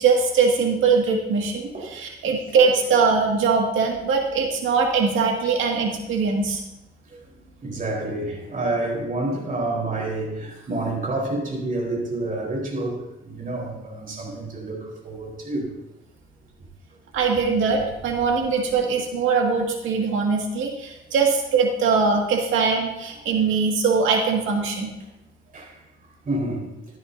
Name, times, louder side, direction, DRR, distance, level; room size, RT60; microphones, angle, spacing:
voice 1, 0.0-6.6 17.1-24.9, right 5 dB, 80° right, 2.2 m, -21 dB
voice 2, 7.6-15.7 25.5-25.8 26.3-26.7, right 2 dB, 45° right, 4.2 m, -28 dB
14.0 x 10.0 x 2.8 m
cardioid pair, 90°, 20 cm